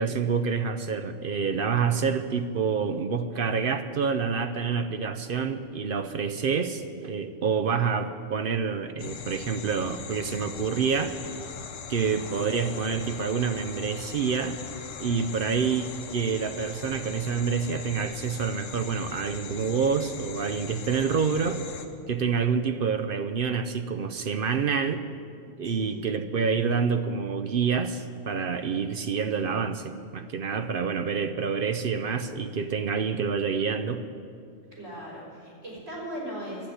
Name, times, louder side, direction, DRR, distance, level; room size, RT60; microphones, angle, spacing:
voice 1, 0.0-11.4 11.9-14.6 15.0-21.6 22.1-25.0 25.6-34.0, right 6 dB, 55° right, 9 dB, 0.7 m, -27 dB
sound 1, 9.0-21.9, left 6 dB, 85° left, 1.2 m, -40 dB
voice 2, 25.6-26.0 34.7-36.7, equal, 75° right, -4 dB, 4.8 m, -38 dB
12.0 x 7.8 x 10.0 m, 2.4 s
omnidirectional pair, 1.3 m